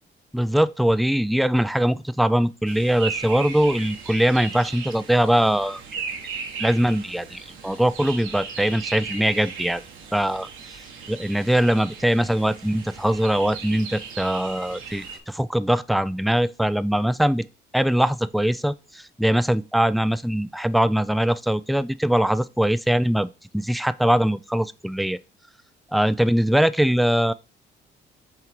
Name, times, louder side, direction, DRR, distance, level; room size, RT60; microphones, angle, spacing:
voice 1, 0.3-6.0 6.6-9.8 10.1-10.5 11.1-17.5 17.7-23.3 23.5-25.2 25.9-27.3, equal, ahead, 0.3 m, -22 dB
sound 1, 2.6-15.2, right 5 dB, 85° right, 1.5 m, -37 dB
5.8 x 3.8 x 4.5 m
cardioid pair, 90°, 20 cm